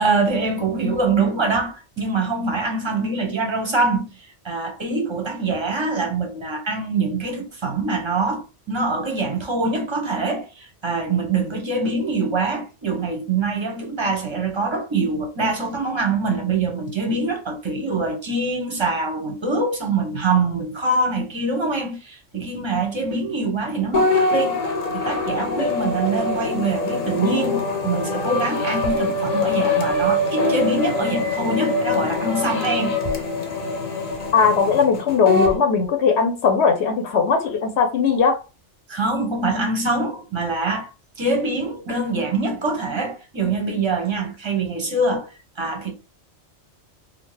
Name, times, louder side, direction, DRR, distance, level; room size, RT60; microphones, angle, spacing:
voice 1, 0.0-24.6 24.9-33.0 38.9-40.9 41.2-45.3 45.6-45.9, right 3 dB, 30° right, 0.6 m, -24 dB
sound 1, 23.9-35.6, left 2 dB, 45° left, 0.5 m, -23 dB
voice 2, 34.3-38.4, left 5 dB, 70° left, 0.8 m, -19 dB
2.7 x 2.1 x 3.1 m
omnidirectional pair, 1.2 m